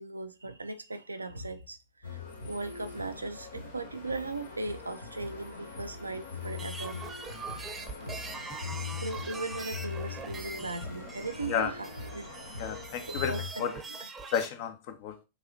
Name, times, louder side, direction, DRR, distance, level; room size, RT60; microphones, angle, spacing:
voice 1, 0.0-2.2 2.4-7.0 8.0-8.2 9.0-11.9 12.1-12.3 13.3-13.7, right 2 dB, 80° right, 0.5 m, -38 dB
sound 1, 2.0-13.5, left 5 dB, 70° left, 1.0 m, -41 dB
sound 2, 6.5-14.5, right 4 dB, 15° right, 0.8 m, -43 dB
voice 2, 7.6-8.0 11.5-11.7 12.6-13.7 14.3-15.2, left 8 dB, 50° left, 0.7 m, -33 dB
6.7 x 2.7 x 2.7 m
figure-of-eight pair, 90°, 0 cm